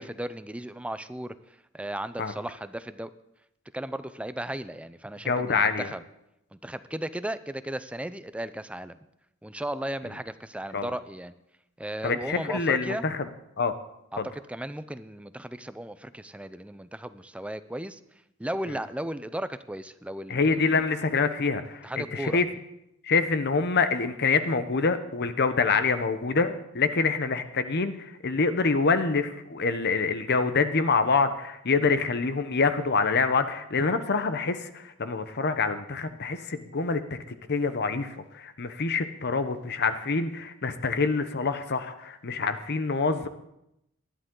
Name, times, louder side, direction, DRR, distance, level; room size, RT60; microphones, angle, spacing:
voice 1, 0.0-3.1 3.7-6.0 6.5-9.0 9.4-11.3 11.8-13.0 14.1-18.0 18.4-20.8 21.8-22.4, right 1 dB, 5° right, 13 dB, 0.4 m, -35 dB
voice 2, 5.2-5.9 10.7-10.9 12.0-13.3 13.6-13.7 14.2-14.3 20.3-22.4 23.0-37.2 37.5-43.3, left 4 dB, 50° left, 10 dB, 0.8 m, -26 dB
19.0 x 11.5 x 3.8 m, 0.83 s
head